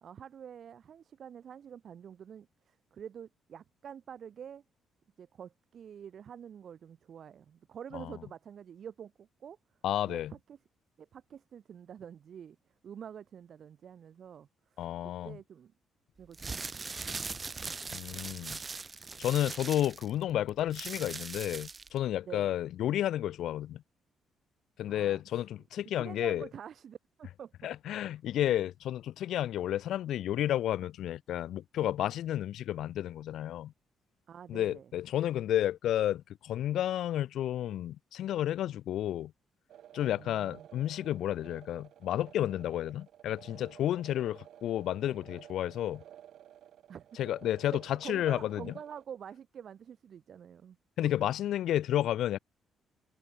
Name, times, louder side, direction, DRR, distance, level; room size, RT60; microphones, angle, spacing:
voice 1, 0.0-4.6 5.2-9.6 10.0-10.6 11.0-12.6 12.8-15.7 16.2-16.8 22.3-22.6 24.9-25.2 26.0-27.5 28.1-28.2 34.3-34.9 40.0-40.7 46.9-47.2 47.7-50.8 51.0-51.1, right 8 dB, 60° right, 1.3 m, -47 dB
voice 2, 9.8-10.3 14.8-15.4 17.9-18.6 19.2-23.8 24.8-26.5 27.6-33.7 34.5-39.3 39.9-46.0 47.2-48.7 51.0-52.4, left 12 dB, 75° left, 0.4 m, -31 dB
sound 1, 16.2-22.0, right 4 dB, 30° right, 0.9 m, -40 dB
sound 2, 39.7-49.0, right 11 dB, 75° right, 1.7 m, -54 dB
cardioid pair, 90°, 0 cm